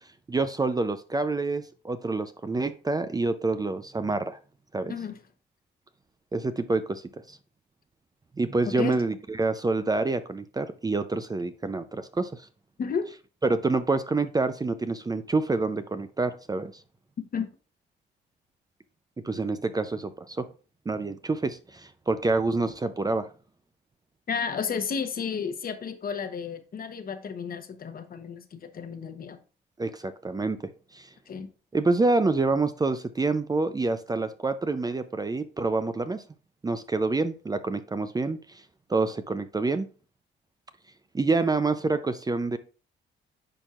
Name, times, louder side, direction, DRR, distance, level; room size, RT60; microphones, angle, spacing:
voice 1, 0.3-4.4 4.7-4.9 6.3-7.4 8.4-12.5 13.4-16.7 19.2-20.5 20.9-23.3 29.8-31.1 31.7-36.2 36.6-38.6 38.9-39.9 41.1-42.6, right 3 dB, 20° right, 0.5 m, -27 dB
voice 2, 12.8-13.1 17.3-17.5 24.3-29.4 31.3-31.5, left 6 dB, 45° left, 1.0 m, -32 dB
9.9 x 4.4 x 2.4 m
cardioid pair, 90°, 20 cm